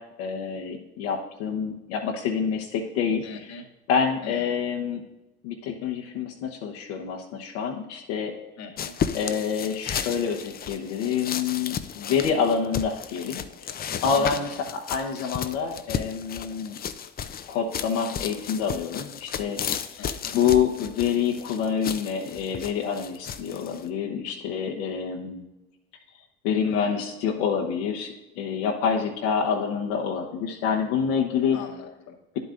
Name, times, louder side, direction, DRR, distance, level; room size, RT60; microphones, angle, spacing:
voice 1, 0.0-3.5 3.9-5.0 5.4-8.3 9.1-16.8 17.5-19.6 19.9-20.0 20.3-25.5 26.4-31.6, left 6 dB, 75° left, 1 dB, 1.0 m, -27 dB
voice 2, 3.2-3.7 4.2-4.6 8.6-9.0 14.1-14.6 20.0-20.4 26.6-27.1 31.5-32.2, left 4 dB, 55° left, 5 dB, 1.2 m, -41 dB
sound 1, 8.8-23.9, left 8 dB, 30° left, 0.5 m, -34 dB
10.0 x 8.0 x 2.5 m, 1.0 s
hypercardioid pair, 80°, 31 cm